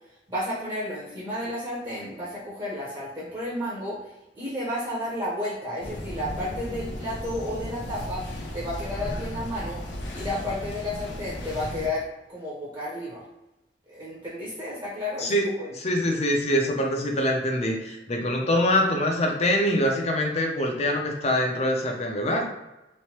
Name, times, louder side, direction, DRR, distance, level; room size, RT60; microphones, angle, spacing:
voice 1, 0.3-4.0 4.4-9.8 10.1-13.2 13.9-15.7, left 1 dB, 30° right, -7 dB, 0.7 m, -32 dB
sound 1, 5.8-11.9, left 1 dB, 85° left, 0.6 m, -35 dB
voice 2, 15.7-22.4, left 1 dB, 35° left, 2 dB, 0.5 m, -24 dB
3.1 x 2.1 x 2.8 m, 0.98 s
head